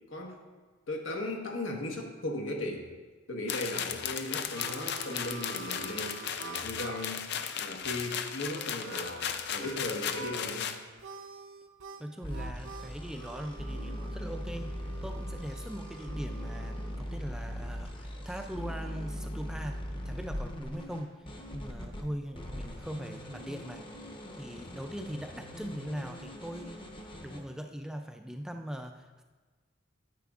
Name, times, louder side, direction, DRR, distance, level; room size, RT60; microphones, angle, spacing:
voice 1, 0.1-0.4 0.9-2.9 3.3-7.3 7.6-10.8, left 2 dB, 75° left, 1 dB, 1.3 m, -37 dB
sound 1, 3.5-10.8, left 8 dB, 55° left, 0.5 m, -36 dB
Harmonica, 4.0-9.8 10.1-10.6 11.0-17.0, right 4 dB, 70° right, 0.5 m, -47 dB
voice 2, 12.0-23.9 24.3-26.9 27.2-29.2, equal, 5° right, 4 dB, 0.3 m, -41 dB
sound 2, 12.2-22.0 22.4-27.4, equal, 25° left, 0.8 m, -40 dB
9.2 x 9.2 x 2.4 m, 1.4 s
head